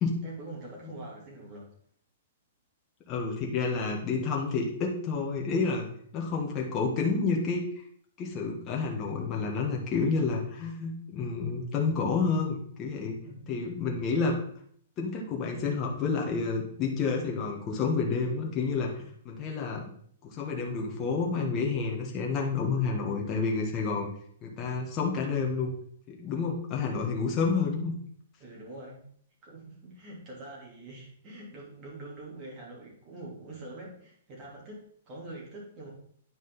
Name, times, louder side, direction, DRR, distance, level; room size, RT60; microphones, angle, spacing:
voice 1, 0.2-1.7 13.2-13.6 28.4-29.0 29.4-35.9, right 2 dB, 25° right, -4 dB, 3.2 m, -44 dB
voice 2, 3.1-7.6 8.2-13.2 13.5-14.4 15.0-19.8 20.2-24.1 24.4-25.7 26.1-27.9, left 4 dB, 20° left, -1 dB, 1.4 m, -29 dB
9.8 x 5.0 x 4.0 m, 0.63 s
hypercardioid pair, 165°, 0 cm